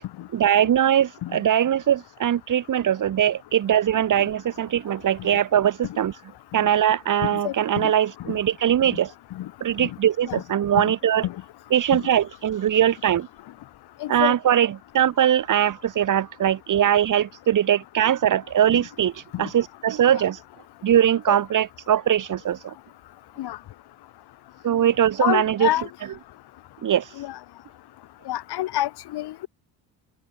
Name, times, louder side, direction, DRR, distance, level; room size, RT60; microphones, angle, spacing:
voice 1, 0.3-6.1 6.5-9.1 9.6-11.2 11.7-13.3 14.1-14.7 14.9-19.1 19.4-20.4 20.8-22.6 24.6-25.7 26.8-27.0, right 10 dB, 45° right, 1.4 m, -21 dB
voice 2, 7.3-7.9 8.2-8.4 8.8-9.0 9.3-9.5 9.8-9.9 10.3-10.4 10.8-10.9 11.2-11.3 14.0-14.3 18.7-18.8 19.3-19.5 20.1-20.2 21.3-21.4 23.4-23.6 25.2-25.9 27.2-27.4 28.3-29.5, left 14 dB, 65° left, 1.3 m, -28 dB
cardioid pair, 120°, 43 cm